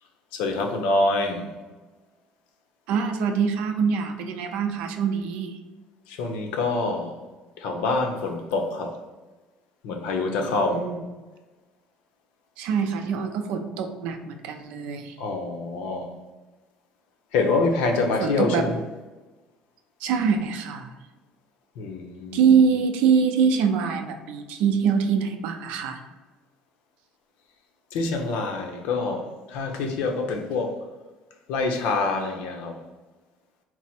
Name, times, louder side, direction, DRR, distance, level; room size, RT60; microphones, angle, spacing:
voice 1, 0.3-1.5 6.1-7.1 7.6-8.9 9.8-10.9 15.2-16.1 17.3-18.7 21.8-22.5 27.9-30.8 31.5-32.7, left 3 dB, 85° left, 3 dB, 0.7 m, -26 dB
voice 2, 2.9-5.6 10.4-11.0 12.6-15.2 18.2-18.7 20.0-20.9 22.3-26.0, right 6 dB, 75° right, 6 dB, 0.5 m, -24 dB
4.4 x 2.0 x 4.2 m, 1.2 s
cardioid pair, 170°, 2 cm